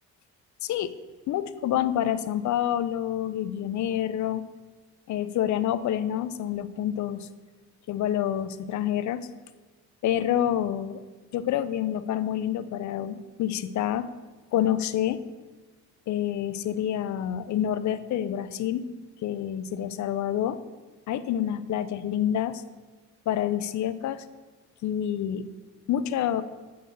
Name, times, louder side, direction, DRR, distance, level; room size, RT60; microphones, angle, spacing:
voice 1, 0.6-1.0 1.3-4.5 5.1-7.3 7.9-9.3 10.0-11.0 11.3-14.1 14.5-15.2 16.1-18.9 19.2-20.6 21.1-22.6 23.3-24.2 24.8-25.5 25.9-26.4, left 10 dB, 70° left, 14 dB, 0.6 m, -27 dB
9.4 x 4.2 x 6.8 m, 1.3 s
cardioid pair, 90°, 30 cm